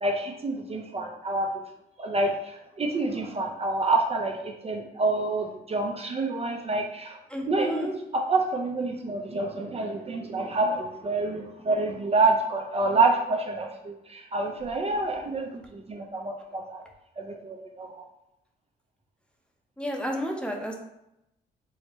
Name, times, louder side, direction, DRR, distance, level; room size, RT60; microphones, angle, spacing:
voice 1, 0.0-1.5 2.0-7.2 7.5-16.8 17.2-18.0, right 3 dB, 35° right, 2 dB, 0.5 m, -27 dB
voice 2, 7.3-7.9 19.8-20.7, equal, 5° left, 1 dB, 0.6 m, -31 dB
4.8 x 2.1 x 2.9 m, 0.85 s
cardioid pair, 75°, 18 cm